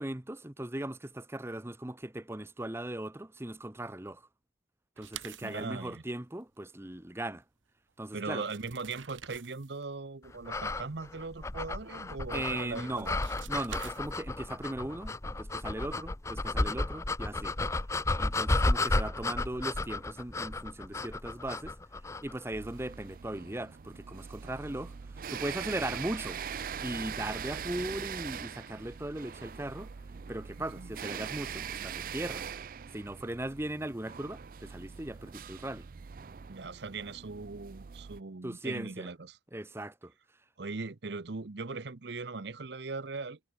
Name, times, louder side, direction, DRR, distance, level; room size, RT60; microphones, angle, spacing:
voice 1, 0.0-4.3 5.0-7.4 8.0-8.4 12.3-13.1 13.5-17.6 18.2-21.8 22.2-26.4 26.8-29.9 30.3-32.5 32.9-35.8 38.4-39.1 39.5-40.1, right 1 dB, 15° right, 0.8 m, -38 dB
sound 1, 5.0-5.7 7.9-8.0 8.3-9.8 12.7-14.4, right 10 dB, 90° right, 1.2 m, -48 dB
voice 2, 5.4-6.0 8.1-13.1 30.8-30.9 36.5-39.4 40.6-43.4, right 3 dB, 65° right, 0.8 m, -39 dB
sound 2, 10.5-22.4, left 2 dB, 15° left, 0.6 m, -33 dB
sound 3, 22.5-38.2, right 7 dB, 45° right, 0.4 m, -42 dB
head